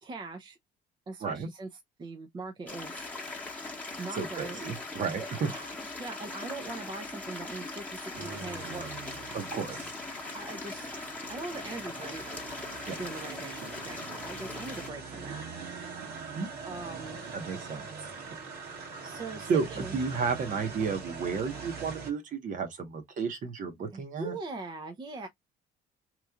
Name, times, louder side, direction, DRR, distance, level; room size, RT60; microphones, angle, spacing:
voice 1, 0.0-0.6 1.1-1.7 2.0-3.1 4.0-4.6 5.2-8.9 10.2-10.9 11.3-12.4 13.0-15.4 16.6-17.2 19.0-20.0 23.9-25.3, right 3 dB, 25° right, 0.6 m, -41 dB
sound 1, 2.7-14.9, left 3 dB, 10° left, 1.1 m, -40 dB
voice 2, 4.2-5.5 9.3-9.8 12.9-13.0 16.0-16.5 17.3-17.9 19.5-24.4, right 5 dB, 50° right, 1.1 m, -32 dB
sound 2, 8.1-22.1, right 5 dB, 70° right, 1.6 m, -43 dB
3.1 x 2.4 x 3.5 m
cardioid pair, 110°, 17 cm